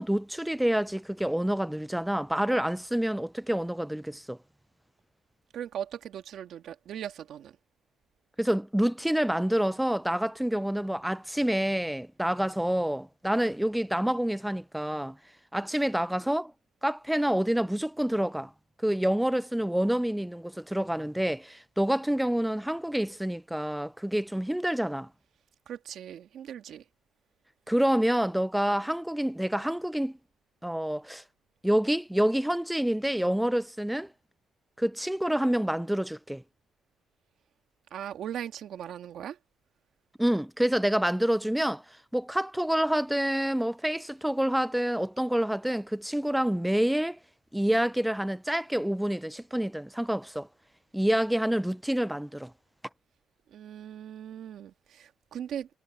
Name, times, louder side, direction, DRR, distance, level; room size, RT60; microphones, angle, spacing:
voice 1, 0.0-4.4 8.4-15.2 15.5-16.5 16.8-18.5 18.8-25.1 27.7-30.2 30.6-31.2 31.6-34.1 34.8-36.4 40.2-41.8 42.1-47.2 47.5-50.5 50.9-52.5, equal, 5° right, 0.3 m, -27 dB
voice 2, 5.5-7.6 25.7-26.8 37.9-39.4 53.5-55.7, right 9 dB, 70° right, 1.6 m, -39 dB
cardioid pair, 90°, 0 cm